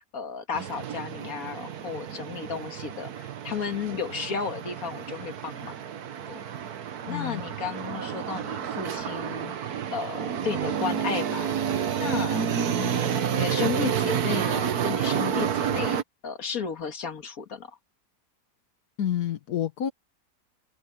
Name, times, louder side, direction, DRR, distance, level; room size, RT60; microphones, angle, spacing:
voice 1, 0.0-5.8 6.3-6.4 7.1-11.5 12.0-12.5 12.8-17.8, left 6 dB, 70° left, 2.2 m, -34 dB
sound 1, 0.5-16.0, right 8 dB, 85° right, 1.6 m, -30 dB
voice 2, 7.0-7.5 19.0-19.9, left 10 dB, 85° left, 1.5 m, -29 dB
omnidirectional pair, 1.6 m